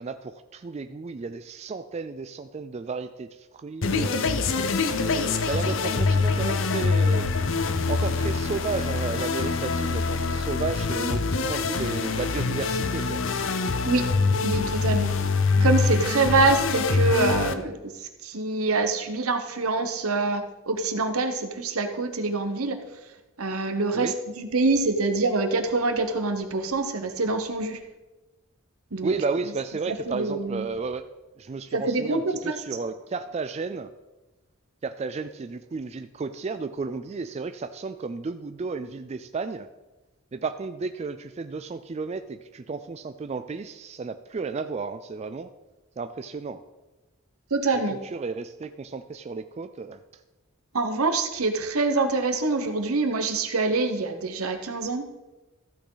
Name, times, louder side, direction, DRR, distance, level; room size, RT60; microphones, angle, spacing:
voice 1, 0.0-4.2 5.1-7.3 7.9-13.2 23.9-24.2 29.0-31.0 31.4-33.9 34.8-39.7 40.3-45.5 46.0-46.6 47.9-50.0, right 4 dB, 30° right, 9 dB, 0.3 m, -33 dB
sound 1, 3.8-17.5, left 4 dB, 60° left, 0.6 m, -25 dB
voice 2, 14.4-15.1 15.6-17.9 18.2-22.8 23.4-27.8 28.9-29.1 29.9-30.6 31.7-32.5 47.5-48.0 50.7-55.1, right 3 dB, 80° right, 6 dB, 1.1 m, -25 dB
14.0 x 6.2 x 3.9 m, 1.1 s
head